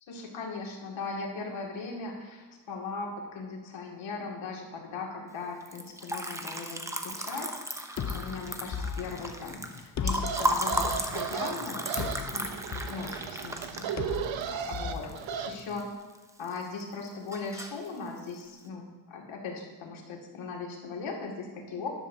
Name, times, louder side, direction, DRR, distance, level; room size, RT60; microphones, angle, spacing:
voice 1, 0.1-13.9 14.5-15.9 16.4-21.9, left 4 dB, 80° left, -1 dB, 2.4 m, -39 dB
Liquid, 5.6-15.8 16.1-16.8 17.1-17.9, right 1 dB, 5° right, 0.7 m, -35 dB
sound 1, 8.0-15.9, left 7 dB, 40° left, 0.6 m, -38 dB
sound 2, 10.1-15.5, right 8 dB, 80° right, 0.9 m, -36 dB
13.0 x 11.0 x 2.8 m, 1.3 s
cardioid pair, 130°, 46 cm